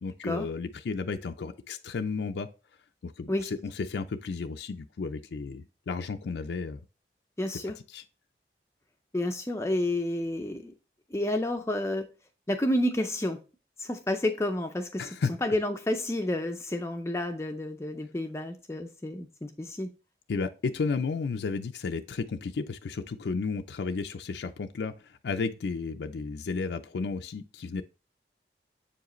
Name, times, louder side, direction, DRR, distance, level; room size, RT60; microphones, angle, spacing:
voice 1, 0.0-2.5 3.0-6.8 7.9-8.0 15.0-15.3 20.3-27.8, left 4 dB, 75° left, 0.4 m, -33 dB
voice 2, 7.4-7.8 9.1-10.7 11.1-12.1 12.5-13.4 13.8-15.1 15.4-19.9, left 1 dB, 15° left, 0.4 m, -30 dB
7.1 x 4.8 x 3.0 m
head